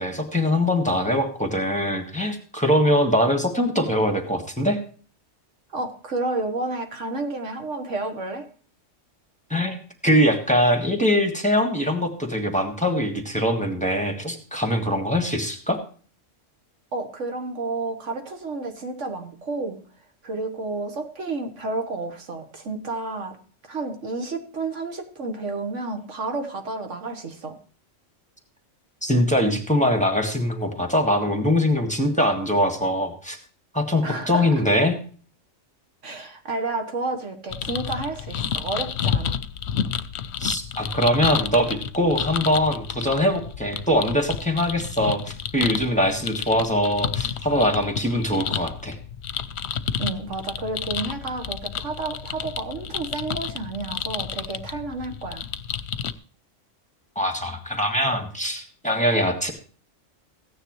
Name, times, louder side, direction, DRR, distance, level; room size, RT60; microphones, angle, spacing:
voice 1, 0.0-4.8 9.5-15.8 29.0-33.4 33.7-35.0 40.4-49.0 57.1-59.5, equal, 5° left, 3 dB, 1.6 m, -22 dB
voice 2, 5.7-8.5 16.9-19.8 20.2-23.4 23.7-27.6 34.0-34.5 36.0-39.4 50.0-55.5, right 3 dB, 75° right, 5 dB, 1.7 m, -31 dB
sound 1, 37.5-56.1, left 8 dB, 65° left, 0.9 m, -30 dB
15.5 x 9.7 x 3.1 m, 0.42 s
omnidirectional pair, 1.3 m